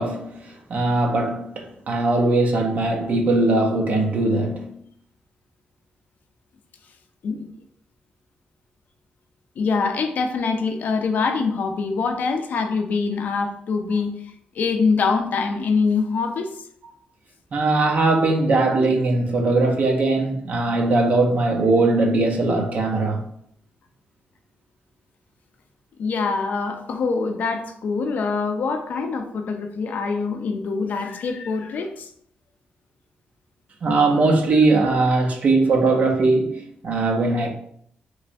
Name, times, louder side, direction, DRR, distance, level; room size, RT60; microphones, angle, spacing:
voice 1, 0.0-4.8 17.5-23.2 33.8-37.5, right 2 dB, 45° right, 0.6 m, -20 dB
voice 2, 9.6-14.1 14.5-16.5 26.0-32.1, left 4 dB, 60° left, 0.4 m, -24 dB
3.2 x 3.1 x 2.6 m
wide cardioid pair, 175°, 3 cm